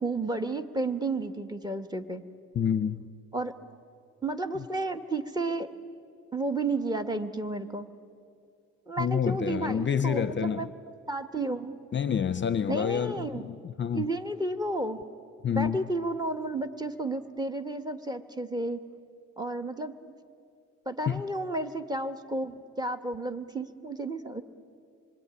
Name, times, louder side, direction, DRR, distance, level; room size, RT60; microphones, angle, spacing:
voice 1, 0.0-2.2 3.3-3.5 4.2-5.7 6.3-7.9 8.9-10.7 11.1-11.8 12.7-13.5 13.9-15.0 15.5-18.8 19.4-20.1 20.8-24.4, right 2 dB, 15° right, 8 dB, 1.3 m, -32 dB
voice 2, 2.5-3.0 9.0-10.7 11.9-14.1 15.4-15.8 21.1-21.2, left 7 dB, 40° left, 13 dB, 0.6 m, -28 dB
26.0 x 22.0 x 9.7 m, 2.4 s
cardioid pair, 135°, 30 cm